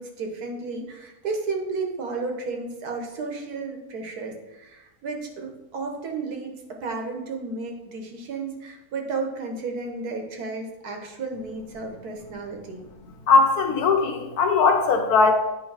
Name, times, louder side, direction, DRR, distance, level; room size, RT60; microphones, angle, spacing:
voice 1, 0.0-12.8, right 3 dB, 90° right, 2 dB, 1.6 m, -33 dB
voice 2, 13.3-15.3, left 4 dB, 85° left, 4 dB, 1.4 m, -19 dB
9.0 x 3.2 x 4.8 m, 0.98 s
omnidirectional pair, 1.6 m